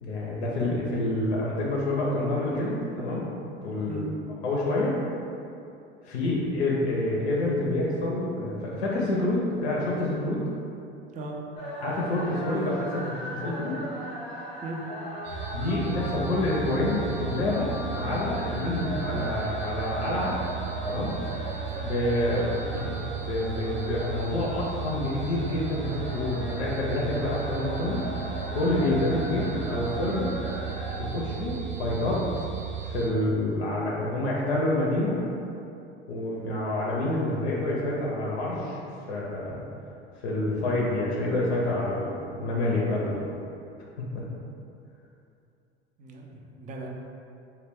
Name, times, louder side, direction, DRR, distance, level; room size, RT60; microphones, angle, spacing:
voice 1, 0.0-3.3 3.6-4.0 4.4-5.0 6.0-10.4 11.8-13.8 15.5-20.4 20.8-21.1 21.8-28.0 28.5-30.3 31.0-32.3 32.8-35.2 36.1-38.8 39.1-39.6 40.2-43.3 44.1-44.2, left 1 dB, 80° left, -4 dB, 0.5 m, -28 dB
sound 1, 11.6-31.0, equal, 20° left, 0.6 m, -38 dB
sound 2, 15.2-33.1, right 8 dB, 50° right, 0.7 m, -35 dB
voice 2, 46.0-46.9, right 2 dB, 25° right, -1 dB, 0.4 m, -38 dB
2.2 x 2.1 x 3.4 m, 2.7 s
hypercardioid pair, 75°, 33 cm